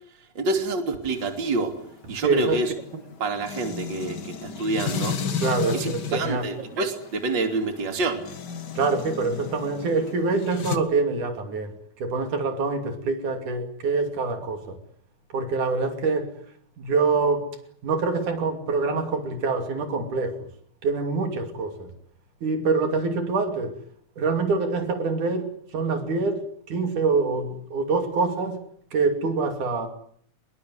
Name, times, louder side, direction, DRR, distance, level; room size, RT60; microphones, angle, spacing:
voice 1, 0.4-1.7 2.1-2.7 3.2-5.2 5.7-8.2, right 3 dB, 35° right, 3.4 m, -27 dB
sound 1, 1.0-10.8, left 6 dB, 40° left, 1.9 m, -34 dB
voice 2, 2.2-2.6 5.4-6.5 8.8-14.8 15.3-16.3 16.8-17.5 17.8-20.5 20.8-21.9 22.4-23.8 24.2-28.6 28.9-29.9, right 4 dB, 75° right, 4.2 m, -25 dB
25.0 x 22.0 x 9.5 m
omnidirectional pair, 3.6 m